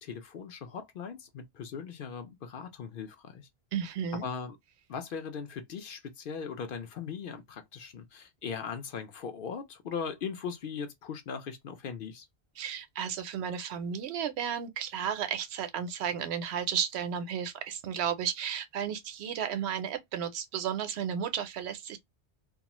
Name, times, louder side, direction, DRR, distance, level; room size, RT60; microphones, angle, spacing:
voice 1, 0.0-3.5 4.2-4.6 4.9-12.3, left 6 dB, 60° left, 0.7 m, -39 dB
voice 2, 3.7-4.3 12.6-22.0, right 8 dB, 80° right, 0.8 m, -33 dB
2.4 x 2.3 x 2.8 m
omnidirectional pair, 1.1 m